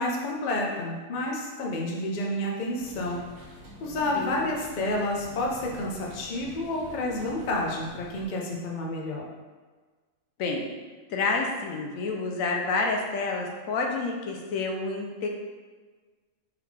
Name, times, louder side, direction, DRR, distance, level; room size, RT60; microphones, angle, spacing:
voice 1, 0.0-3.2 3.8-9.2, left 1 dB, 50° left, -1 dB, 0.6 m, -30 dB
sound 1, 2.8-8.3, right 1 dB, 90° right, 1.3 m, -46 dB
voice 2, 11.1-15.3, left 3 dB, 85° left, 1 dB, 1.0 m, -29 dB
3.6 x 3.4 x 3.2 m, 1.4 s
omnidirectional pair, 1.4 m